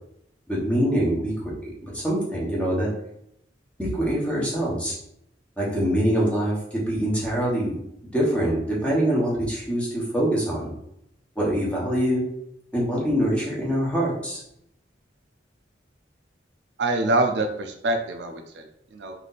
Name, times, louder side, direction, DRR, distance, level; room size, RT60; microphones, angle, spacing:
voice 1, 0.5-2.9 3.8-4.9 5.6-7.8 8.1-10.7 11.3-12.2 12.7-14.4, equal, 5° left, -5 dB, 1.2 m, -24 dB
voice 2, 16.8-19.1, right 2 dB, 65° right, 5 dB, 0.5 m, -25 dB
3.3 x 2.7 x 4.0 m, 0.75 s
head